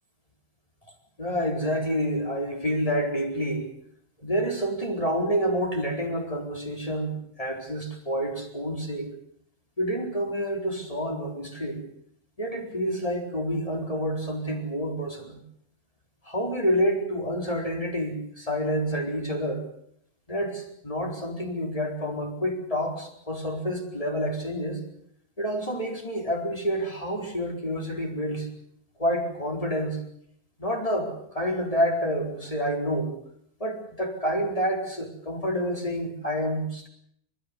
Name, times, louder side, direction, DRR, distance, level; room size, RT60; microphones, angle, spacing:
voice 1, 1.2-3.7 4.2-9.1 9.8-11.8 12.4-15.4 16.3-19.6 20.3-24.8 25.4-28.5 29.0-30.0 30.6-33.1 33.6-36.9, equal, 20° left, 1 dB, 4.5 m, -28 dB
29.5 x 14.0 x 8.4 m, 0.69 s
omnidirectional pair, 1.9 m